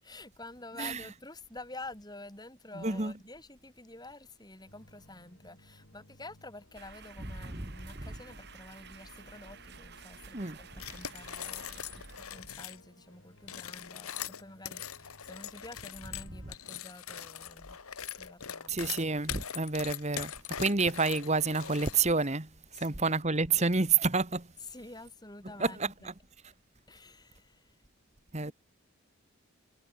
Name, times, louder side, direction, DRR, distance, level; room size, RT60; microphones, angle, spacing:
voice 1, 0.0-17.8 18.1-18.8 22.7-23.4 24.6-26.1 26.9-27.8 28.4-28.5, left 2 dB, 20° left, 5.1 m, -49 dB
voice 2, 2.7-3.1 7.5-7.7 8.0-8.1 10.3-10.6 18.7-20.3 20.6-24.5 25.6-25.9 28.3-28.5, right 4 dB, 30° right, 1.5 m, -29 dB
sound 1, 4.7-16.5, left 1 dB, 65° left, 4.3 m, -60 dB
sound 2, 6.8-12.8, right 5 dB, 50° right, 2.7 m, -52 dB
sound 3, 10.8-12.8 13.4-22.3, left 9 dB, 85° left, 1.8 m, -41 dB
head